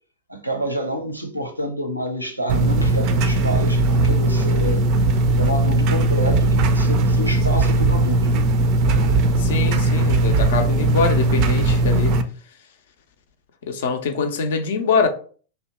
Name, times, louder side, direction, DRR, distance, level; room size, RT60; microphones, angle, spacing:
voice 1, 0.3-4.9 5.3-8.5 8.9-9.4, equal, 90° right, 0.6 m, -28 dB
sound 1, 2.5-12.2, right 2 dB, 40° right, 0.3 m, -18 dB
voice 2, 9.4-12.2 13.7-15.1, left 5 dB, 60° left, 0.5 m, -23 dB
2.8 x 2.2 x 4.1 m
figure-of-eight pair, 90°, 0 cm